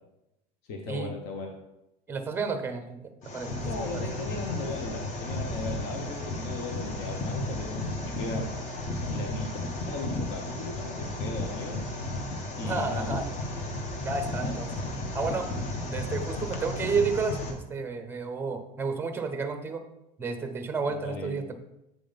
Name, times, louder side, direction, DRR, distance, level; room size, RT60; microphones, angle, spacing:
voice 1, 0.7-1.5 3.6-8.5 9.1-9.5 9.9-11.8 12.6-13.2 14.4-14.6 14.8-14.9 20.9-21.4, left 2 dB, 60° left, 2 dB, 1.1 m, -37 dB
voice 2, 2.1-3.0 3.3-4.3 12.6-13.2 14.0-14.8 15.1-15.5 15.9-19.8 20.2-21.6, right 4 dB, 10° right, 7 dB, 0.8 m, -31 dB
sound 1, 3.2-17.5, left 2 dB, 35° left, 1.1 m, -34 dB
7.8 x 3.8 x 5.2 m, 0.90 s
supercardioid pair, 145°, 20 cm